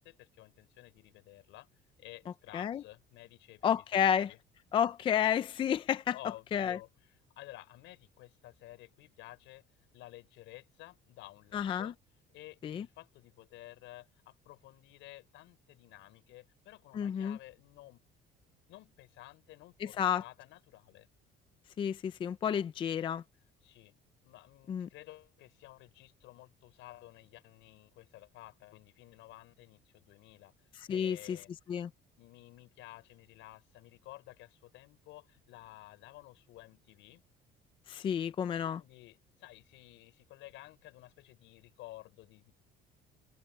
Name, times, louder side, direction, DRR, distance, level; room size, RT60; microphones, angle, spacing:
voice 1, 0.0-1.7 2.0-4.4 6.1-9.6 9.9-12.0 12.3-18.0 18.7-21.1 23.6-24.0 24.2-30.5 30.9-31.5 32.2-37.2 38.6-42.5, left 17 dB, 75° left, 6.1 m, -53 dB
voice 2, 3.6-4.3 4.7-6.1 6.5-6.8 11.5-11.9 12.6-12.8 16.9-17.4 20.0-20.2 21.8-23.2 24.7-24.9 30.9-31.4 31.7-31.9 37.9-38.8, left 8 dB, 25° left, 0.4 m, -30 dB
cardioid pair, 180°, 20 cm